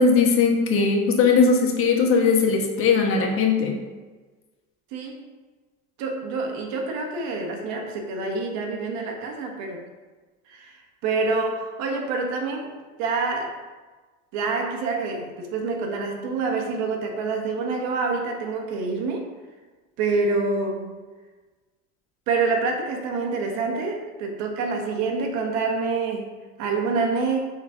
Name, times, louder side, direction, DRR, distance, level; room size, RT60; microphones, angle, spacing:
voice 1, 0.0-3.8, left 4 dB, 45° left, 2 dB, 1.3 m, -19 dB
voice 2, 4.9-5.2 6.0-9.8 10.5-13.6 14.3-19.3 20.0-21.0 22.3-27.4, right 4 dB, 65° right, 2 dB, 1.5 m, -27 dB
7.4 x 4.0 x 4.9 m, 1.3 s
supercardioid pair, 130°, 31 cm